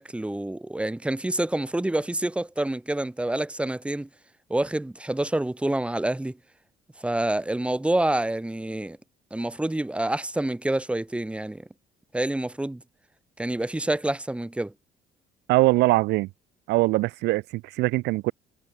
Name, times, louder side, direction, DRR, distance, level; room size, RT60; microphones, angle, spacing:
voice 1, 0.0-4.1 4.5-6.4 7.0-9.0 9.3-11.7 12.1-12.8 13.4-14.7, right 1 dB, 5° right, 1.5 m, -27 dB
voice 2, 15.5-16.3 16.7-18.3, right 20 dB, 85° right, 0.7 m, -22 dB
cardioid pair, 110°, 17 cm